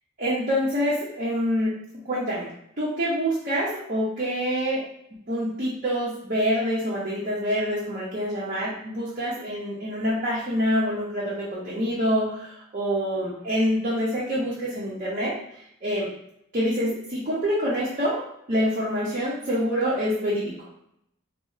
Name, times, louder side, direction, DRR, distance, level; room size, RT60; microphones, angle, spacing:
voice 1, 0.2-1.8 2.0-2.5 2.8-4.8 5.3-15.3 15.8-16.1 16.5-20.5, equal, 40° right, -8 dB, 0.6 m, -26 dB
4.0 x 2.0 x 2.4 m, 0.75 s
head